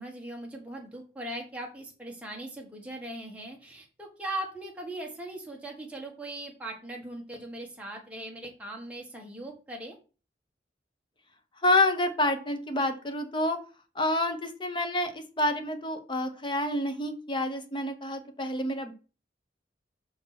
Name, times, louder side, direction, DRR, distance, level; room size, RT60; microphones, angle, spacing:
voice 1, 0.0-10.0, right 1 dB, 5° right, -1 dB, 1.5 m, -39 dB
voice 2, 11.6-13.6 13.9-18.9, left 1 dB, 25° left, 7 dB, 0.9 m, -28 dB
5.5 x 4.7 x 5.8 m, 0.35 s
head